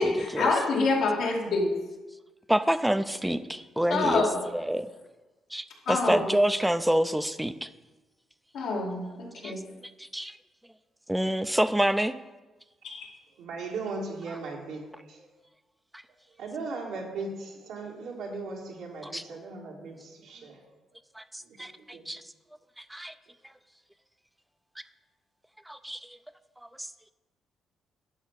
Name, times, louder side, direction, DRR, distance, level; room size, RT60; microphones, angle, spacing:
voice 1, 0.0-1.7 3.9-4.4 5.9-6.3 8.5-9.6 12.8-13.1, left 3 dB, 85° left, -3 dB, 2.5 m, -26 dB
voice 2, 2.5-4.3 4.5-4.9 5.5-7.7 9.4-9.5 10.0-10.4 11.1-12.2 15.9-16.0 19.1-19.2 21.2-22.2 22.8-23.1 25.7-26.1 26.8-26.9, right 1 dB, 5° right, 12 dB, 0.5 m, -27 dB
voice 3, 13.4-15.3 16.4-20.8 21.5-22.1, right 3 dB, 85° right, -3 dB, 2.0 m, -38 dB
11.5 x 4.8 x 5.8 m, 1.2 s
cardioid pair, 90°, 0 cm